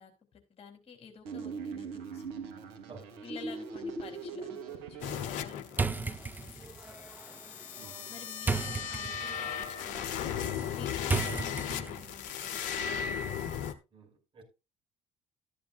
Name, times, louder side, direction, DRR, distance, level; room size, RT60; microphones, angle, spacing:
voice 1, 0.0-2.7 3.2-13.6, left 7 dB, 40° left, 4 dB, 3.2 m, -52 dB
sound 1, 1.2-5.2, right 4 dB, 70° right, 1.8 m, -40 dB
sound 2, 5.0-13.7, left 8 dB, 60° left, 1.0 m, -36 dB
sound 3, 5.7-12.2, right 4 dB, 10° right, 0.8 m, -36 dB
voice 2, 13.9-14.4, right 5 dB, 35° right, -1 dB, 5.7 m, -51 dB
13.5 x 10.0 x 2.5 m, 0.27 s
figure-of-eight pair, 55°, 15 cm